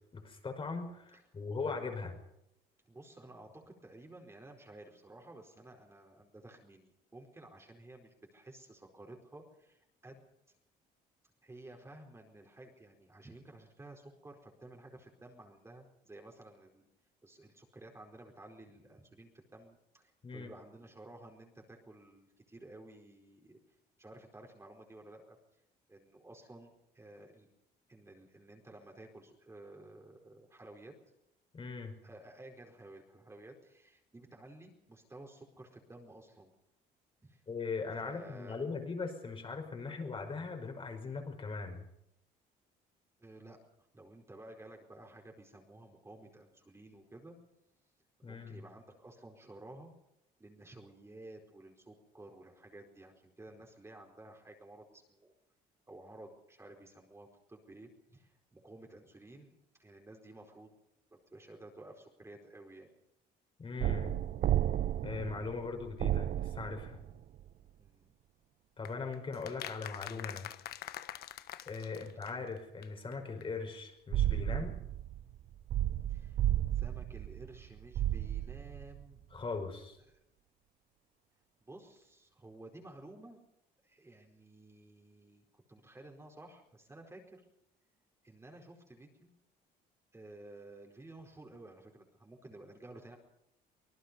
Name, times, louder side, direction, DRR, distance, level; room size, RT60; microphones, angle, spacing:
voice 1, 0.1-2.2 20.2-20.5 31.5-32.0 37.5-41.8 48.2-48.6 63.6-64.2 65.0-67.0 68.8-70.5 71.7-74.8 79.3-80.0, left 4 dB, 30° left, 4 dB, 5.4 m, -40 dB
voice 2, 2.9-10.3 11.4-16.9 17.2-23.6 24.0-25.4 25.9-27.5 27.9-30.9 32.0-36.5 37.2-37.4 38.0-38.8 43.2-43.6 43.9-47.4 48.2-49.9 50.4-55.3 55.9-60.7 61.1-62.9 67.8-68.1 71.9-72.1 76.1-76.4 76.7-79.2 80.1-80.2 81.6-83.4 83.8-87.4 88.2-89.3 90.1-93.2, right 2 dB, 15° right, 1 dB, 4.6 m, -53 dB
sound 1, 63.8-67.5 74.1-79.0, right 12 dB, 60° right, 0.7 m, -33 dB
sound 2, 68.9-72.6 72.8-72.9 73.1-73.2 73.4-73.5, left 12 dB, 70° left, 1.3 m, -45 dB
25.5 x 19.5 x 5.4 m, 0.82 s
cardioid pair, 110°, 17 cm